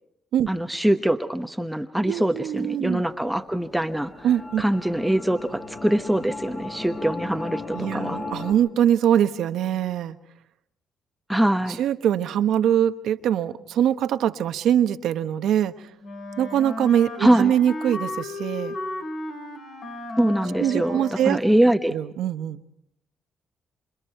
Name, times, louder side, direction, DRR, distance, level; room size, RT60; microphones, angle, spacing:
voice 1, 0.5-4.1 4.6-8.2 11.3-11.8 17.2-17.5 20.2-21.9, right 1 dB, 5° right, 7 dB, 1.0 m, -23 dB
voice 2, 2.1-3.0 4.2-4.6 7.7-10.2 11.8-15.9 16.4-18.8 20.6-21.4 21.9-22.6, right 10 dB, 80° right, 9 dB, 1.1 m, -23 dB
sound 1, 2.6-8.5, left 3 dB, 45° left, 7.1 m, -36 dB
Wind instrument woodwind instrument, 16.0-21.6, left 2 dB, 65° left, 3.2 m, -34 dB
27.5 x 27.0 x 4.6 m, 0.72 s
cardioid pair, 90°, 0 cm